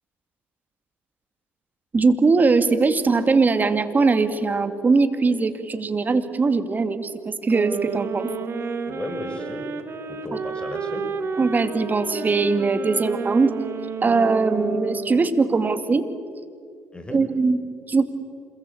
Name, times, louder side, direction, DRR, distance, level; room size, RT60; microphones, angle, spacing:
voice 1, 1.9-8.3 10.3-10.4 11.4-13.5 14.0-16.1 17.1-17.6 17.9-18.1, right 4 dB, 35° right, 10 dB, 2.3 m, -21 dB
sound 1, 7.5-15.5, right 4 dB, 50° right, 2.6 m, -31 dB
voice 2, 8.9-9.7 10.1-11.0 16.9-17.2, left 2 dB, 20° left, 6 dB, 6.3 m, -34 dB
27.0 x 22.0 x 8.6 m, 2.3 s
hypercardioid pair, 60°, 5 cm